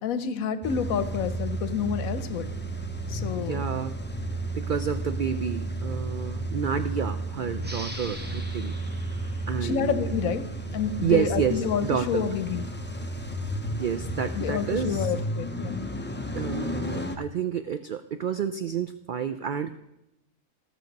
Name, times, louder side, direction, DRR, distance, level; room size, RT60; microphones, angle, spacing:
voice 1, 0.0-2.5 3.1-3.7 9.6-10.5 10.7-12.6 14.4-15.8, left 7 dB, 85° left, 11 dB, 1.1 m, -29 dB
Car / Engine starting / Idling, 0.6-17.2, right 1 dB, 15° left, 0.4 m, -32 dB
voice 2, 3.4-4.0 4.6-8.7 9.5-10.1 11.0-12.3 13.7-15.1 16.3-19.8, right 8 dB, 80° right, 9 dB, 0.4 m, -29 dB
sound 1, 7.6-10.9, equal, 10° right, 0.8 m, -44 dB
16.0 x 6.5 x 5.2 m, 0.90 s
omnidirectional pair, 1.4 m